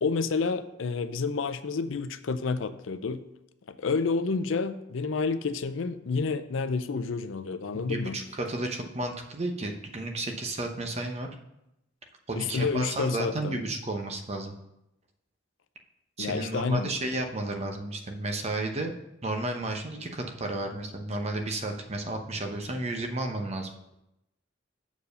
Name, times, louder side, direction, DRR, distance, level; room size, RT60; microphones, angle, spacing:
voice 1, 0.0-3.2 3.7-8.2 12.4-13.6 16.2-16.9, left 4 dB, 80° left, 12 dB, 0.5 m, -29 dB
voice 2, 7.7-11.3 12.3-14.5 16.2-18.9 19.2-23.7, right 2 dB, 35° right, 4 dB, 0.8 m, -32 dB
7.0 x 4.7 x 6.4 m, 0.87 s
head